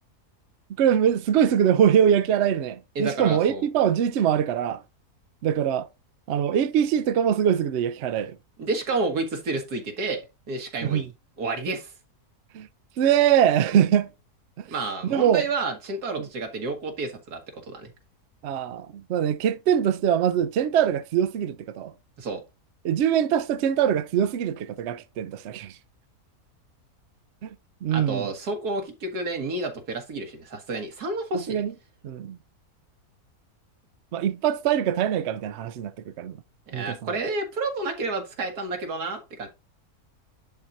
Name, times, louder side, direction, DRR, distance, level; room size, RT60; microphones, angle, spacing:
voice 1, 0.8-4.8 5.4-5.9 6.3-8.4 10.8-11.1 12.5-12.7 13.0-14.1 14.6-14.7 15.0-15.4 16.2-16.3 18.4-21.9 22.8-25.8 27.4-27.6 27.8-28.3 31.3-31.7 32.0-32.4 34.1-36.4 36.7-37.2, right 9 dB, 65° right, 0.7 m, -23 dB
voice 2, 3.0-3.6 8.6-10.2 10.5-11.1 11.4-11.9 14.7-17.9 22.2-22.4 27.9-31.6 36.7-39.5, right 3 dB, 90° right, 2.1 m, -30 dB
10.5 x 4.4 x 2.6 m
omnidirectional pair, 1.6 m